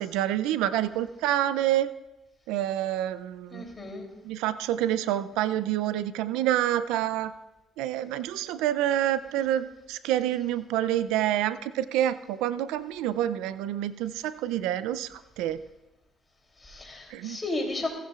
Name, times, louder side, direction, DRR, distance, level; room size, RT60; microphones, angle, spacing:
voice 1, 0.0-1.9 2.5-3.7 4.2-7.3 7.8-15.6 17.1-17.4, right 12 dB, 90° right, 15 dB, 0.4 m, -27 dB
voice 2, 3.5-4.1 16.6-17.9, left 2 dB, 20° left, 0 dB, 3.1 m, -33 dB
15.0 x 15.0 x 2.4 m, 0.99 s
cardioid pair, 90°, 0 cm